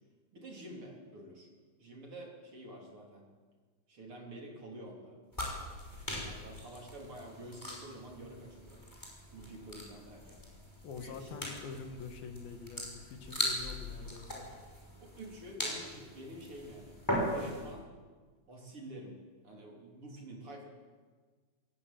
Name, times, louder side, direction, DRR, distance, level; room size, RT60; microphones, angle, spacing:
voice 1, 0.3-1.5 1.8-3.3 3.9-5.2 6.2-8.8 9.3-10.4 11.0-11.4 15.0-17.9 18.5-19.2 19.4-20.7, right 1 dB, 35° right, 0 dB, 4.1 m, -48 dB
sound 1, 5.3-17.7, equal, 5° left, 5.2 m, -40 dB
voice 2, 10.8-14.5, left 5 dB, 75° left, 6 dB, 3.6 m, -45 dB
21.5 x 16.5 x 9.2 m, 1.5 s
omnidirectional pair, 4.4 m